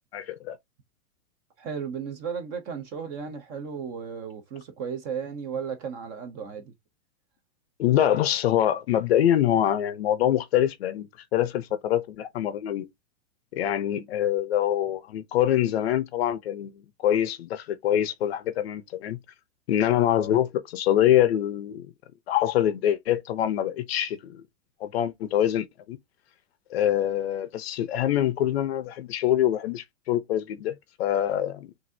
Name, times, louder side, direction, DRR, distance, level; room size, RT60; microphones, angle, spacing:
voice 1, 0.1-0.6 7.8-12.9 13.5-19.2 19.7-21.9 22.3-24.4 24.8-26.0 26.7-31.7, left 11 dB, 45° left, 0.6 m, -25 dB
voice 2, 1.6-6.7, right 6 dB, 20° right, 0.7 m, -34 dB
6.0 x 2.6 x 2.6 m
supercardioid pair, 160°, 42 cm